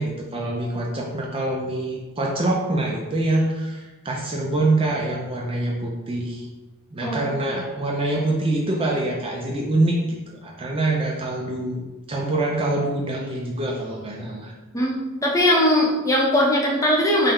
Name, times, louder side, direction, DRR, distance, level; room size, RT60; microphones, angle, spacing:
voice 1, 0.0-6.5 6.9-11.8 12.1-14.5, right 2 dB, 25° right, -1 dB, 0.5 m, -25 dB
voice 2, 14.7-17.3, left 1 dB, 15° left, -3 dB, 0.8 m, -20 dB
5.3 x 2.2 x 3.6 m, 1.2 s
head